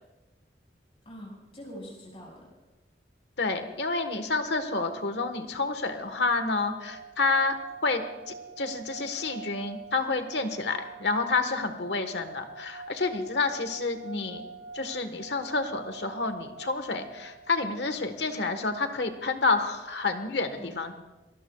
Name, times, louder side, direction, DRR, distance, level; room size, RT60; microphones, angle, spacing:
voice 1, 1.0-2.5 20.6-20.9, equal, 35° left, -2 dB, 6.0 m, -44 dB
voice 2, 3.4-7.6 7.8-14.4 14.7-20.9, left 3 dB, 75° left, 8 dB, 1.4 m, -29 dB
sound 1, 6.1-17.9, right 4 dB, 90° right, 3.0 m, -46 dB
27.0 x 19.0 x 2.4 m, 1.1 s
head